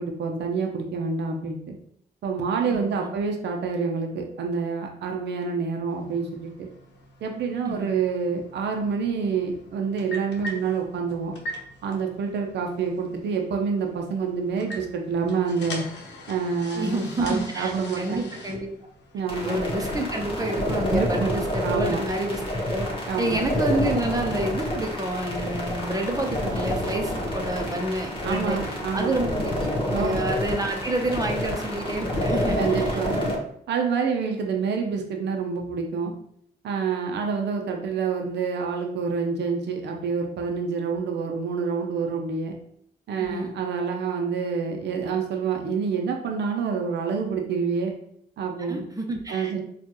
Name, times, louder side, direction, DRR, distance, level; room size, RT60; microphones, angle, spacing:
voice 1, 0.0-1.8 2.2-6.7 7.2-11.4 11.8-15.8 16.3-18.3 19.1-19.6 20.9-22.0 23.1-23.4 28.2-29.1 29.9-30.2 32.6-33.2 33.7-36.1 36.6-42.6 43.1-47.9 48.4-48.9 49.3-49.6, right 5 dB, 80° right, 2 dB, 0.6 m, -27 dB
voice 2, 2.7-3.1 7.6-7.9 16.7-18.7 19.3-22.4 22.7-22.9 23.2-33.0 43.2-43.5 48.6-49.6, right 1 dB, 20° right, 2 dB, 0.8 m, -29 dB
sound 1, 5.9-19.6, left 1 dB, 85° left, 0.8 m, -42 dB
sound 2, 19.3-33.4, left 1 dB, 30° left, 1.3 m, -28 dB
4.3 x 2.4 x 2.9 m, 0.69 s
cardioid pair, 65°, 18 cm